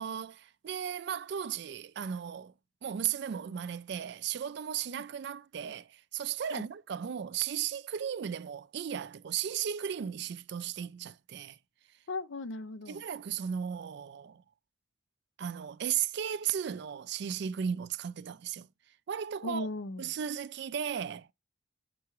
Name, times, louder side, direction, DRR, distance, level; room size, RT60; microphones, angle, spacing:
voice 1, 0.0-2.5 2.8-11.6 12.9-14.4 15.4-18.7 19.1-19.7 20.0-21.3, right 8 dB, 55° right, 0.3 m, -35 dB
voice 2, 12.1-13.0 19.4-20.1, left 2 dB, 65° left, 0.5 m, -37 dB
6.8 x 3.0 x 4.6 m
head